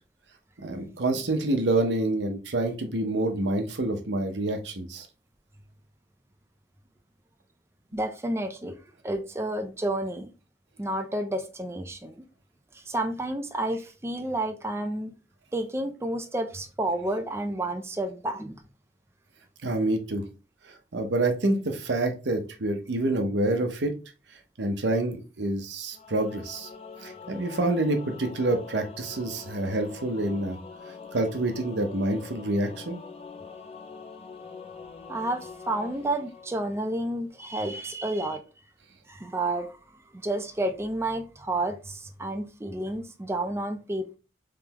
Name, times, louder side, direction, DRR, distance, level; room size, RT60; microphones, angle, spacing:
voice 1, 0.6-5.1 19.6-20.2 20.9-23.9 24.6-26.7 27.0-30.6 31.1-33.0, right 2 dB, 90° right, 5 dB, 0.8 m, -27 dB
voice 2, 7.9-8.7 9.0-10.3 10.8-12.2 12.7-15.1 15.5-18.5 35.1-38.4 39.1-39.8 40.1-44.2, right 1 dB, 15° right, 5 dB, 0.4 m, -30 dB
Singing / Musical instrument, 25.9-37.2, left 5 dB, 35° left, 0.5 m, -44 dB
3.8 x 3.3 x 2.9 m, 0.33 s
head